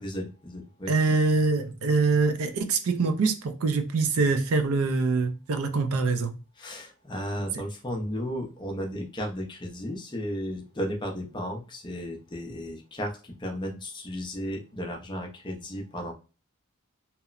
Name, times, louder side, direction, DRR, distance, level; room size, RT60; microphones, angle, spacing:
voice 1, 0.0-0.9 6.6-16.1, equal, 20° left, 0.5 m, -34 dB
voice 2, 0.9-6.3, right 4 dB, 70° right, 0.4 m, -24 dB
2.8 x 2.0 x 2.4 m
head